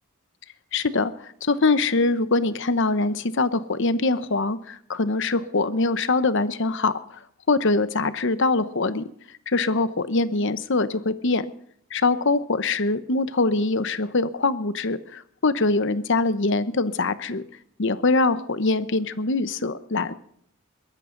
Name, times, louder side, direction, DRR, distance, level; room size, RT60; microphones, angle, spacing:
voice 1, 0.7-7.0 7.5-9.1 9.5-11.5 11.9-17.4 17.8-20.1, left 3 dB, 60° left, 13 dB, 0.9 m, -23 dB
22.0 x 14.0 x 3.9 m, 0.65 s
head